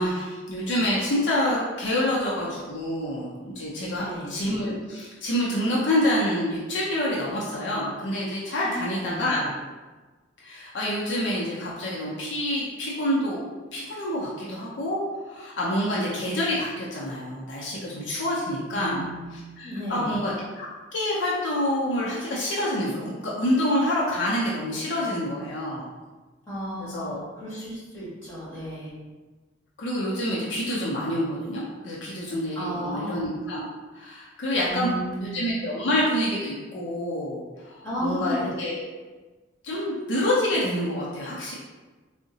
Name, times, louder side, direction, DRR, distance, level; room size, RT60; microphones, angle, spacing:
voice 1, 0.0-9.5 10.4-13.4 13.7-19.0 19.3-25.9 26.8-27.2 29.8-33.7 34.0-34.9 35.2-38.8 39.6-41.5, left 1 dB, 65° left, -5 dB, 0.6 m, -27 dB
voice 2, 3.9-4.3 8.6-9.5 18.7-20.1 26.5-29.0 32.5-33.3 34.7-35.4 37.8-38.5, equal, 15° left, -11 dB, 1.5 m, -34 dB
3.7 x 2.1 x 2.7 m, 1.3 s
head